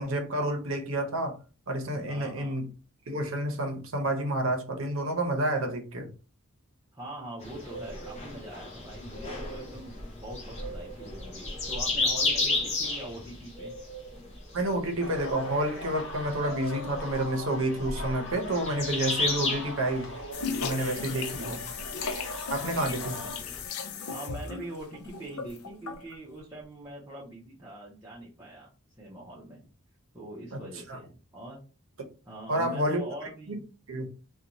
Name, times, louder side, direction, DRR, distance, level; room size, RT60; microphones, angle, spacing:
voice 1, 0.0-1.4 1.7-2.7 3.1-6.1 14.5-20.1 20.6-21.6 22.5-23.1 30.5-30.6 30.9-31.0 32.5-33.0 33.5-33.6 33.9-34.1, right 1 dB, 65° right, 0.7 m, -29 dB
voice 2, 2.0-2.7 6.9-13.7 21.1-21.6 23.0-23.3 24.1-28.7 29.0-29.6 30.1-31.6 32.3-33.6, right 1 dB, 15° right, 0.6 m, -43 dB
sound 1, 7.4-23.6, left 2 dB, 30° left, 0.6 m, -34 dB
sound 2, 15.0-23.4, left 1 dB, 55° left, 0.9 m, -40 dB
sound 3, 20.3-26.2, left 5 dB, 85° left, 0.5 m, -36 dB
2.6 x 2.2 x 2.9 m
head